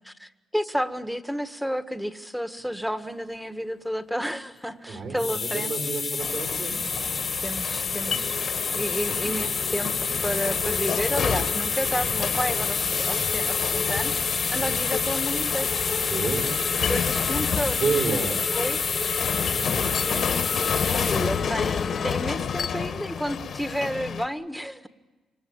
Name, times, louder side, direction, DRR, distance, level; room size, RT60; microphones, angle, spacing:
voice 1, 0.0-5.8 6.7-6.8 7.4-8.3 8.7-9.9 10.2-15.7 16.9-18.2 18.5-18.8 19.5-19.6 20.8-24.9, equal, ahead, 10 dB, 1.5 m, -31 dB
voice 2, 4.8-7.4 7.7-8.3 14.5-14.7 16.1-16.8 17.7-18.4 19.7-20.3, right 5 dB, 55° right, 1 dB, 5.7 m, -31 dB
sound 1, 5.0-22.3, left 5 dB, 40° left, 1.4 m, -28 dB
sound 2, 6.2-24.3, left 7 dB, 60° left, 1.6 m, -31 dB
27.5 x 24.5 x 8.8 m, 1.2 s
cardioid pair, 90°, 0 cm